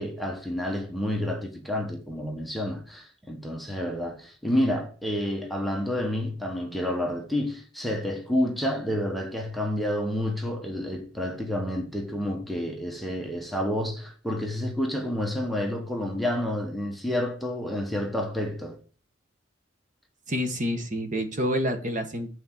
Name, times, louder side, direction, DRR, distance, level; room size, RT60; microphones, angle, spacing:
voice 1, 0.0-18.8, left 1 dB, ahead, 1.0 m, -29 dB
voice 2, 20.3-22.3, equal, 40° right, 1.3 m, -28 dB
8.6 x 4.3 x 7.1 m
head